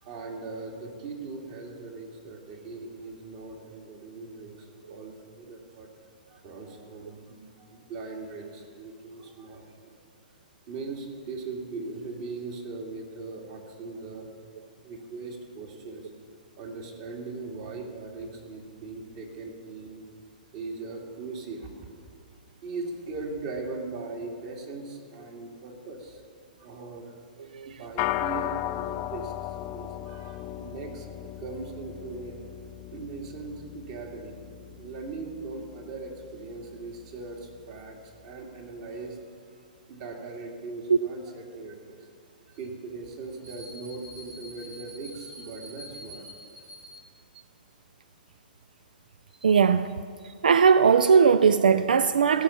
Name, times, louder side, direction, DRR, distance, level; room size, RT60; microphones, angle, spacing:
voice 1, 0.0-5.9 6.3-10.0 10.7-14.3 14.8-16.1 16.6-20.0 20.5-21.9 22.6-26.2 26.6-27.2 27.7-29.3 29.7-31.1 31.4-32.4 32.9-34.4 34.7-39.6 39.9-42.1 42.5-47.0, right 3 dB, 45° right, 2.2 m, -39 dB
sound 1, 28.0-37.5, left 15 dB, 40° left, 0.4 m, -36 dB
voice 2, 49.4-49.9 50.4-52.4, right 6 dB, 80° right, 0.3 m, -19 dB
16.5 x 5.6 x 7.1 m
hypercardioid pair, 120°, 5 cm